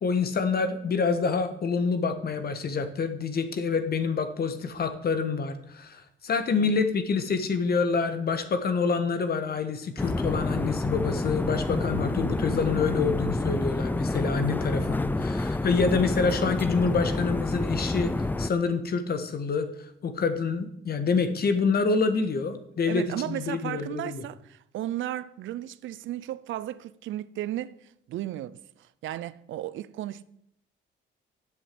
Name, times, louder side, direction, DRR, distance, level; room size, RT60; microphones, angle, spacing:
voice 1, 0.0-18.1 18.4-19.7 20.0-24.2, left 5 dB, 50° left, 1.5 m, -27 dB
sound 1, 10.0-18.5, left 2 dB, 10° left, 0.5 m, -28 dB
voice 2, 22.9-30.2, right 13 dB, 75° right, 0.6 m, -35 dB
8.0 x 7.5 x 7.7 m
cardioid pair, 90°, 20 cm